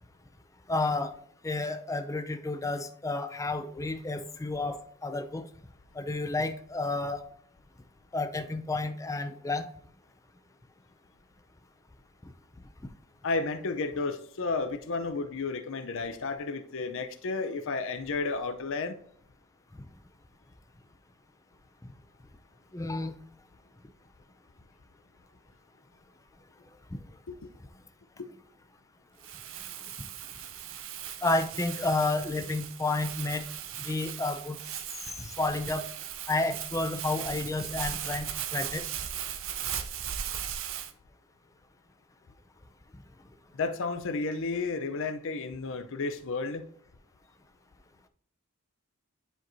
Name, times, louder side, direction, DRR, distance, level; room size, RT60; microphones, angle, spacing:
voice 1, 0.7-1.1 1.4-5.4 5.9-7.2 8.1-9.7 12.2-12.3 19.7-19.9 22.7-23.1 26.9-27.0 30.0-30.1 31.2-33.5 33.8-34.6 35.2-35.9 36.3-38.8, left 2 dB, 15° left, 0.5 m, -31 dB
voice 2, 13.2-19.0 27.3-27.5 28.2-28.3 43.5-46.6, left 3 dB, 65° left, 0.6 m, -32 dB
Crumpling crinkling, 29.2-40.9, right 9 dB, 60° right, 0.6 m, -38 dB
10.0 x 4.6 x 2.7 m
head